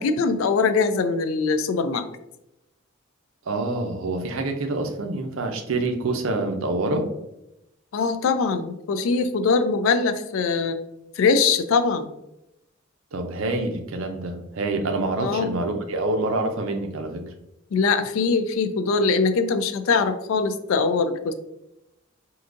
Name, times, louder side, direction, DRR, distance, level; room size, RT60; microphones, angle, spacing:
voice 1, 0.0-2.0 7.9-10.8 11.2-12.1 15.2-15.6 17.7-21.3, left 4 dB, 75° left, 10 dB, 0.3 m, -22 dB
voice 2, 3.5-7.1 13.1-17.2, right 2 dB, 75° right, 5 dB, 0.5 m, -26 dB
3.7 x 2.6 x 2.5 m, 0.88 s
head